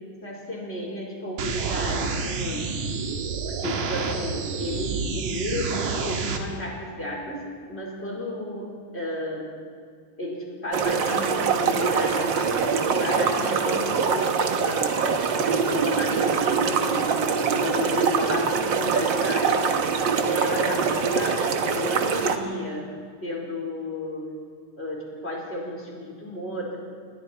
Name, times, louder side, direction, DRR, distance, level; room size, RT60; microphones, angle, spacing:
voice 1, 0.2-2.7 3.5-9.5 10.2-15.0 15.7-17.2 17.5-19.8 20.2-22.9 23.2-24.3 24.8-26.8, left 1 dB, 20° left, -3 dB, 4.9 m, -33 dB
sound 1, 1.4-6.4, right 5 dB, 70° right, 2.9 m, -29 dB
sound 2, 10.7-22.4, right 5 dB, 55° right, 1.4 m, -23 dB
30.0 x 20.5 x 4.5 m, 2.1 s
omnidirectional pair, 3.5 m